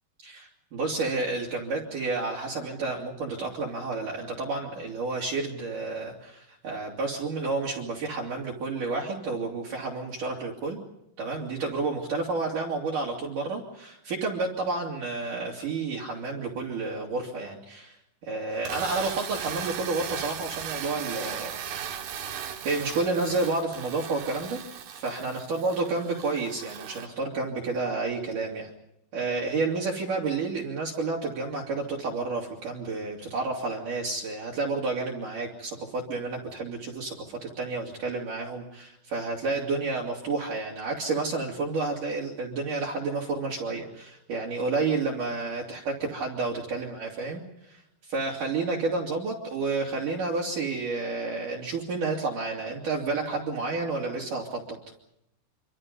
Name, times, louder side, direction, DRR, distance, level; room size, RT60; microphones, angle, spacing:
voice 1, 0.2-10.8 11.2-18.0 18.2-21.6 22.3-24.6 24.9-28.7 29.1-54.6, right 3 dB, 50° right, -4 dB, 4.4 m, -30 dB
sound 1, 18.5-27.1, right 8 dB, 75° right, 4.0 m, -37 dB
27.5 x 26.5 x 5.4 m, 0.81 s
omnidirectional pair, 4.9 m